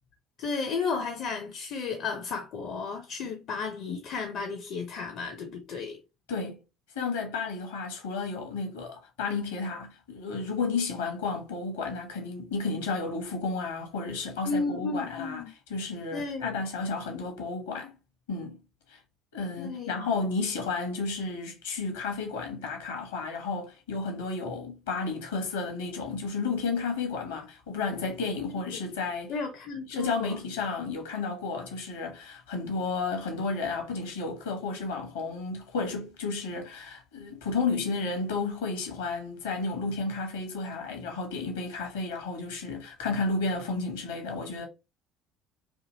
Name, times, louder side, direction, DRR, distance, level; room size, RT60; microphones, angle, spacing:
voice 1, 0.4-6.0 14.4-15.5 16.1-16.6 19.6-20.1 28.4-28.6 29.3-30.4, left 4 dB, 50° left, 0.5 m, -33 dB
voice 2, 6.3-6.6 6.9-15.4 15.7-17.9 18.3-18.6 18.9-19.0 19.3-29.3 29.9-44.7, left 4 dB, 75° left, 0.9 m, -32 dB
2.8 x 2.6 x 2.7 m
figure-of-eight pair, 60°, 0 cm